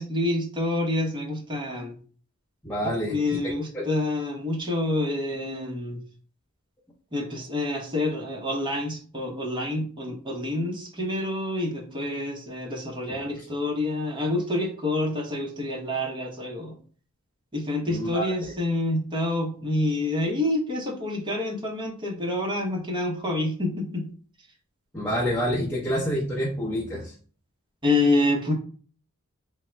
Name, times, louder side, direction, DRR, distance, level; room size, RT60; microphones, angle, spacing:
voice 1, 0.0-1.9 3.1-6.0 7.1-16.7 17.5-24.1 27.8-28.5, left 2 dB, 20° right, 0 dB, 0.8 m, -27 dB
voice 2, 2.6-3.2 3.4-3.9 13.1-13.4 17.8-18.3 24.9-27.1, equal, 10° left, -6 dB, 0.7 m, -28 dB
3.5 x 2.1 x 4.3 m, 0.43 s
head